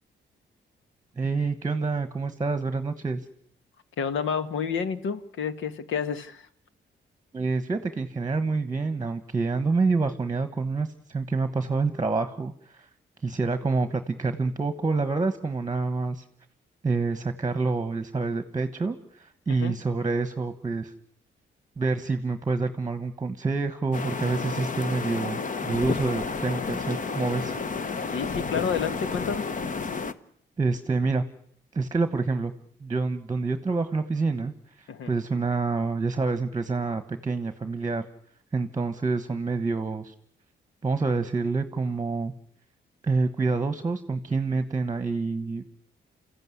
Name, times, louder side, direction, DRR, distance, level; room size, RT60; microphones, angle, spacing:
voice 1, 1.2-3.2 7.3-12.9 13.2-16.2 16.8-20.9 21.8-27.6 27.9-28.0 30.6-31.2 31.7-32.5 32.8-34.5 34.8-38.0 38.5-40.1 40.8-42.3 43.0-45.7, right 3 dB, 20° right, 11 dB, 1.2 m, -27 dB
voice 2, 4.0-6.5 19.5-19.7 28.1-29.5 34.9-35.1, left 6 dB, 90° left, 12 dB, 1.5 m, -30 dB
sound 1, 23.9-30.1, left 4 dB, 40° left, 1.0 m, -31 dB
29.0 x 14.5 x 9.8 m, 0.67 s
cardioid pair, 130°, 20 cm